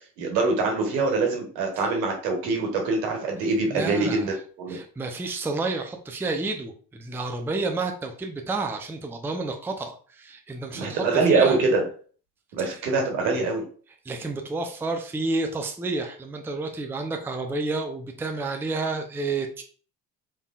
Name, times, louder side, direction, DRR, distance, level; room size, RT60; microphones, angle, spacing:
voice 1, 0.2-4.8 10.7-11.8 12.5-13.6, right 3 dB, 75° right, 2 dB, 1.4 m, -24 dB
voice 2, 3.6-4.3 4.7-11.0 11.3-11.6 12.6-12.7 14.1-19.6, right 3 dB, 5° right, 4 dB, 0.5 m, -30 dB
4.2 x 3.5 x 2.4 m, 0.43 s
hypercardioid pair, 60°, 49 cm